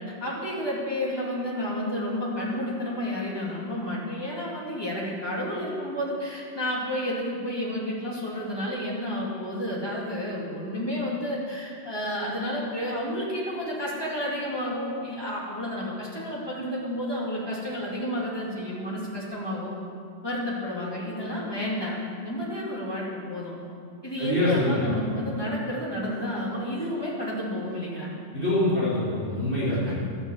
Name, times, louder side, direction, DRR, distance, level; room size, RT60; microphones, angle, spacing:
voice 1, 0.2-19.7 20.2-22.0 22.2-23.6 24.0-28.1 29.7-29.9, equal, 20° left, -6 dB, 2.8 m, -31 dB
voice 2, 24.2-24.9 28.3-30.0, left 1 dB, 10° right, -11 dB, 3.4 m, -25 dB
12.0 x 7.1 x 8.0 m, 2.3 s
omnidirectional pair, 1.3 m